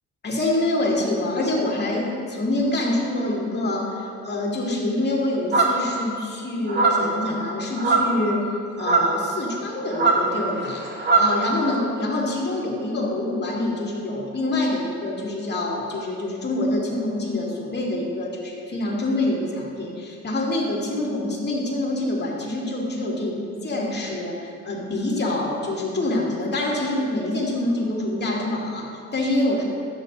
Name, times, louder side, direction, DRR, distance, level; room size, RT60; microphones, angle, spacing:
voice 1, 0.2-8.5 8.8-10.9 11.2-29.6, left 1 dB, 35° left, -2 dB, 2.3 m, -26 dB
sound 1, 5.5-5.9 6.7-7.1 7.7-8.2 8.8-9.2 9.9-11.4, right 4 dB, 35° right, 1.6 m, -20 dB
12.0 x 7.7 x 4.0 m, 2.4 s
cardioid pair, 90°, 30 cm